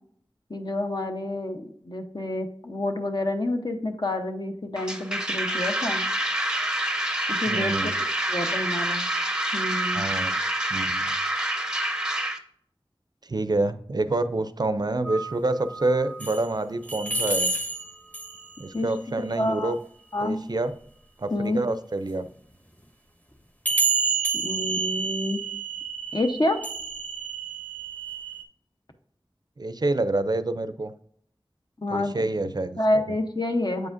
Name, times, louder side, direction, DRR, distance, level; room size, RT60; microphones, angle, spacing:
voice 1, 0.5-6.0 7.3-7.9 8.3-9.1 9.5-10.0 18.7-18.9 19.4-19.8 20.1-20.4 21.3-21.6 24.3-25.4 26.1-26.6 31.8-32.1 32.8-33.9, left 1 dB, 50° left, 5 dB, 0.8 m, -28 dB
sound 1, 4.8-12.4, right 1 dB, 10° right, 0.6 m, -27 dB
voice 2, 7.5-7.9 9.9-10.4 10.7-11.1 13.2-17.5 18.6-19.8 20.2-20.7 21.2-22.3 29.6-30.9 31.9-32.8, right 2 dB, 50° right, 12 dB, 0.4 m, -27 dB
sound 2, 15.1-16.5 16.8-18.6 22.3-22.4 23.7-28.4, right 4 dB, 15° left, 1.1 m, -29 dB
7.8 x 4.9 x 2.5 m, 0.65 s
wide cardioid pair, 40°, 9 cm